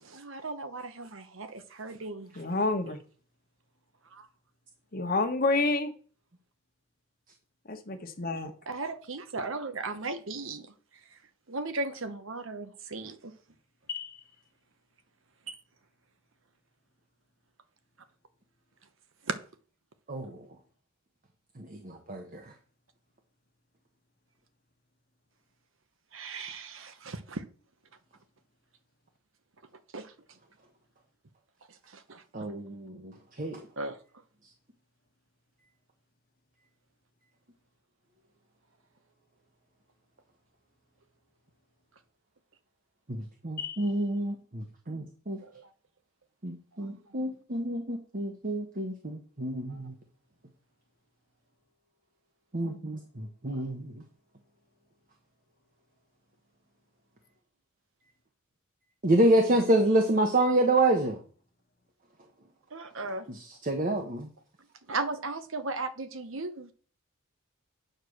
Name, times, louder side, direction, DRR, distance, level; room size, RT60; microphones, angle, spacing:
voice 1, 0.0-2.3 4.1-4.3 8.7-10.7 11.5-13.3 15.5-15.6 19.3-19.4 26.1-27.4 29.9-30.1 31.9-32.2 33.8-34.0 45.4-45.7 46.8-47.0 49.7-49.8 62.7-63.3 64.9-66.7, right 3 dB, 65° right, 1.0 m, -36 dB
voice 2, 2.3-3.0 4.9-5.9 7.7-8.5 13.9-14.2 43.6-43.8, left 3 dB, 45° left, 1.3 m, -29 dB
voice 3, 20.1-20.4 21.6-22.5 32.3-33.7 43.1-45.4 46.4-49.9 52.5-54.0 59.0-61.2 63.3-64.3, right 1 dB, 40° right, 1.1 m, -28 dB
9.1 x 4.7 x 6.5 m
head